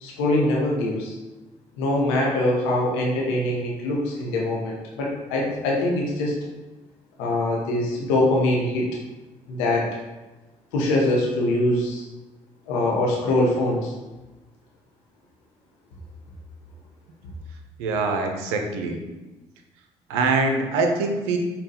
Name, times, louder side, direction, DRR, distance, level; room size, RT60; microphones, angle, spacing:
voice 1, 0.0-1.1 1.8-6.4 7.2-8.9 9.5-9.9 10.7-12.0 12.7-13.9, left 1 dB, 85° left, -2 dB, 0.7 m, -23 dB
voice 2, 17.8-19.0 20.1-21.4, right 3 dB, 85° right, 4 dB, 0.5 m, -23 dB
5.3 x 2.2 x 2.7 m, 1.1 s
hypercardioid pair, 50°, 14 cm